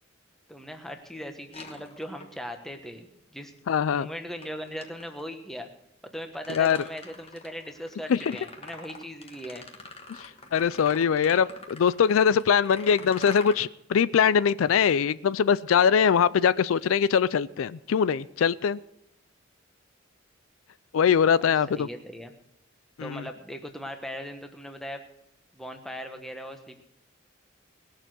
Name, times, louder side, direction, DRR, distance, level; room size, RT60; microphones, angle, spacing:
voice 1, 0.5-3.5 3.9-5.7 6.0-9.6 21.4-22.3 23.0-25.0 25.5-26.8, equal, ahead, 5 dB, 1.1 m, -39 dB
sound 1, 1.5-2.6 4.4-5.3 6.0-13.5, left 3 dB, 30° left, 1.3 m, -46 dB
voice 2, 3.7-4.1 6.5-6.8 8.1-8.2 10.5-18.8 20.9-21.9 23.0-23.2, left 7 dB, 85° left, 17 dB, 0.4 m, -22 dB
19.5 x 6.7 x 6.1 m, 0.77 s
head